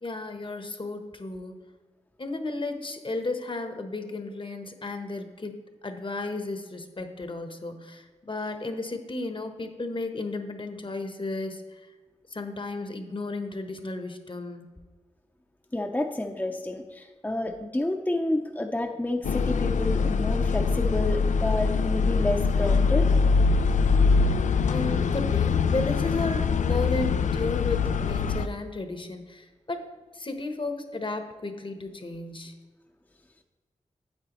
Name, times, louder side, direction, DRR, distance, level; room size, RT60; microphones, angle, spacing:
voice 1, 0.0-1.6 2.2-5.6 5.8-11.9 12.3-14.7 24.7-32.5, left 2 dB, 40° left, 6 dB, 1.0 m, -33 dB
voice 2, 15.7-23.1, left 1 dB, 15° left, 3 dB, 0.6 m, -29 dB
sound 1, 19.2-28.5, left 5 dB, 75° left, 0.4 m, -23 dB
8.9 x 7.5 x 3.0 m, 1.4 s
cardioid pair, 45°, 13 cm